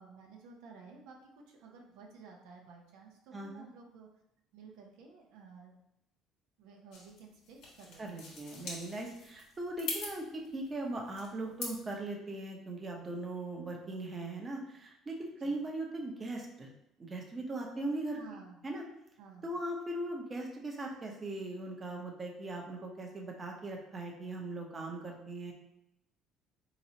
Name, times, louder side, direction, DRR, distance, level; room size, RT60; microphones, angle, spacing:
voice 1, 0.0-4.1 4.5-5.7 6.6-8.3 15.4-15.6 18.1-18.6 19.2-19.5, right 5 dB, 85° right, 1 dB, 0.6 m, -53 dB
voice 2, 3.3-3.7 8.0-16.7 17.0-18.2 18.6-18.8 19.4-25.5, right 2 dB, 25° right, 1 dB, 0.8 m, -39 dB
sound 1, 6.9-11.9, left 3 dB, 80° left, 1.2 m, -44 dB
4.0 x 3.0 x 2.7 m, 0.83 s
cardioid pair, 105°, 0 cm